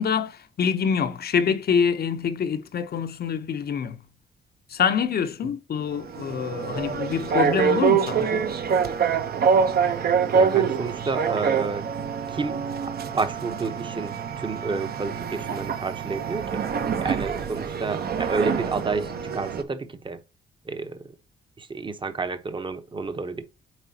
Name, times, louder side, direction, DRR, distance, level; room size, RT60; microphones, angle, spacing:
voice 1, 0.0-4.0 4.7-8.5, left 7 dB, 50° left, 0.8 m, -25 dB
sound 1, 5.8-19.6, right 6 dB, 50° right, 0.8 m, -25 dB
voice 2, 10.3-11.9 12.3-12.6 13.1-20.2 20.6-21.0 21.6-23.5, right 4 dB, 25° right, 0.9 m, -30 dB
9.1 x 3.7 x 2.8 m
cardioid pair, 90°, 20 cm